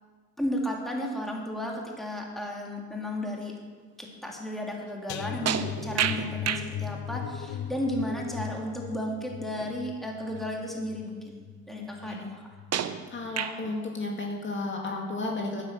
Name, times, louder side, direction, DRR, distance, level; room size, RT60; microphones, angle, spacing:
voice 1, 0.4-3.5 4.0-12.4, equal, ahead, -2 dB, 2.8 m, -34 dB
sound 1, 5.1-12.2 12.5-12.8 13.2-13.3, left 10 dB, 75° left, 0.6 m, -38 dB
sound 2, 5.5-6.7 9.6-9.7 10.4-10.5 12.7-13.8, right 9 dB, 55° right, 0.8 m, -30 dB
voice 2, 11.8-12.3 13.1-15.6, left 2 dB, 40° left, 0 dB, 2.1 m, -33 dB
9.9 x 9.6 x 7.3 m, 1.5 s
cardioid pair, 90°, 30 cm